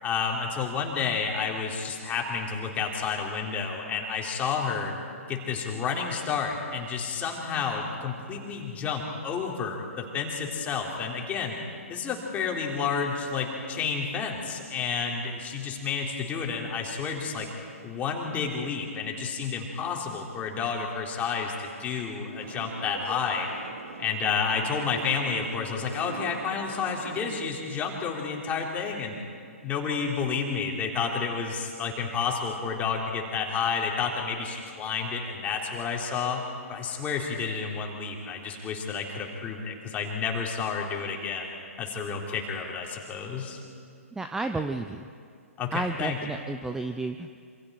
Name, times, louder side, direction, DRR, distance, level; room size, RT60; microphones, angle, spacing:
voice 1, 0.0-4.9 5.3-11.6 11.9-17.5 17.8-23.5 24.0-29.2 29.6-41.5 41.8-43.6 45.6-46.2, left 5 dB, 20° left, -1 dB, 3.6 m, -30 dB
sound 1, 22.4-27.5, right 4 dB, 70° right, 1.9 m, -42 dB
voice 2, 44.1-45.1 45.7-47.4, right 3 dB, 5° right, 7 dB, 0.6 m, -32 dB
27.5 x 26.5 x 4.7 m, 2.3 s
figure-of-eight pair, 120°, 8 cm